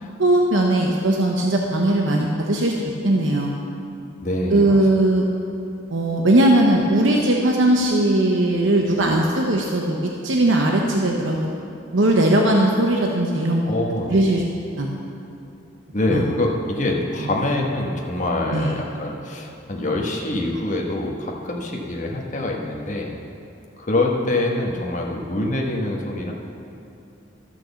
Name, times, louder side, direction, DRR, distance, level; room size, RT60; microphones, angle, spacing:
voice 1, 0.2-2.7 3.0-3.5 4.5-5.2 5.9-11.5 11.9-13.7 14.1-14.4 14.8-14.9 16.1-16.2 17.2-17.3 18.5-18.7, right 1 dB, 85° right, 0 dB, 0.9 m, -19 dB
voice 2, 4.2-4.8 13.7-14.4 15.9-23.2 23.8-26.3, left 2 dB, 40° left, -1 dB, 1.2 m, -25 dB
13.0 x 6.1 x 7.0 m, 2.8 s
head